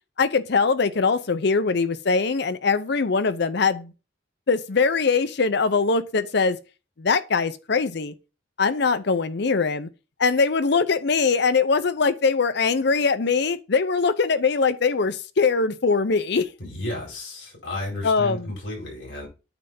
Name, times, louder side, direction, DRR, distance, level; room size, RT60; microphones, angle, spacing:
voice 1, 0.2-3.9 4.5-6.6 7.0-8.1 8.6-9.9 10.2-16.5 18.0-18.5, left 4 dB, 60° left, 0.6 m, -22 dB
voice 2, 16.6-19.3, left 1 dB, 80° left, 4.3 m, -33 dB
8.9 x 3.4 x 5.5 m
head